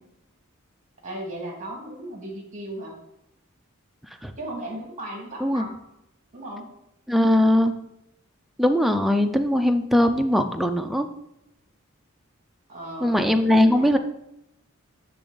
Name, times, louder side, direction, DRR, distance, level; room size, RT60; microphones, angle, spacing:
voice 1, 1.0-2.9 4.4-5.8 6.3-6.7 12.7-13.3 13.6-13.9, right 1 dB, 35° right, -1 dB, 2.1 m, -36 dB
voice 2, 7.1-7.7 8.6-11.1 13.0-14.0, left 1 dB, ahead, 6 dB, 0.4 m, -20 dB
9.9 x 3.4 x 3.9 m, 0.85 s
head